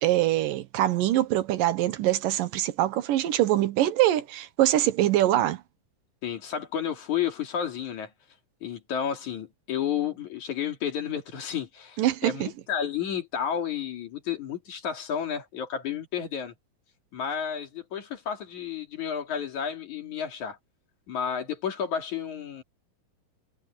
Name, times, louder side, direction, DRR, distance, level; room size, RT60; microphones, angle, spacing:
voice 1, 0.0-5.6 12.0-12.5, right 14 dB, 80° right, 2.7 m, -24 dB
voice 2, 6.2-8.1 8.6-16.5 17.1-20.6 21.1-22.6, left 8 dB, 60° left, 3.9 m, -31 dB
omnidirectional pair, 3.9 m